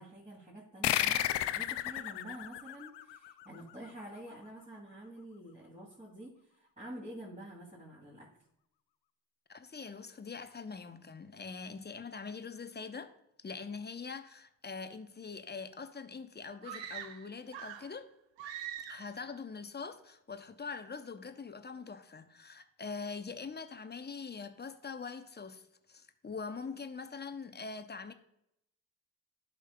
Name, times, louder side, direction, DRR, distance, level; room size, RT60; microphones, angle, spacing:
voice 1, 0.0-8.3, right 1 dB, 15° right, 2.6 m, -48 dB
sound 1, 0.8-3.9, left 13 dB, 60° left, 0.6 m, -33 dB
voice 2, 9.5-13.1 13.4-18.1 18.9-25.6 25.9-28.1, left 5 dB, 20° left, 0.7 m, -43 dB
sound 2, 16.6-18.0 18.4-19.2, right 10 dB, 70° right, 0.7 m, -43 dB
12.0 x 5.1 x 2.2 m
hypercardioid pair, 40°, 47 cm